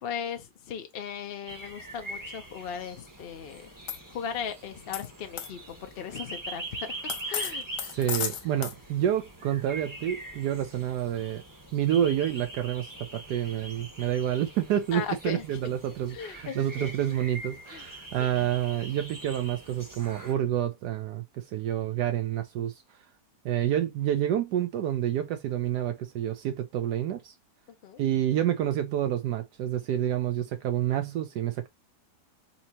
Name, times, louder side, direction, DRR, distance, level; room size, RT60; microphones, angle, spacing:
voice 1, 0.0-3.7 4.1-6.9 7.3-8.0 14.9-15.7 16.1-16.9 17.7-17.8 18.2-18.5 27.8-28.0, left 7 dB, 55° left, 0.6 m, -37 dB
sound 1, 1.5-20.3, right 2 dB, 15° right, 0.9 m, -43 dB
sound 2, 3.9-4.0 4.9-5.1 5.4-5.5 7.1-8.7, left 8 dB, 80° left, 1.4 m, -32 dB
voice 2, 7.9-11.4 11.7-22.8 23.4-27.3 28.0-31.7, right 11 dB, 75° right, 1.2 m, -28 dB
4.2 x 2.8 x 2.8 m
omnidirectional pair, 1.8 m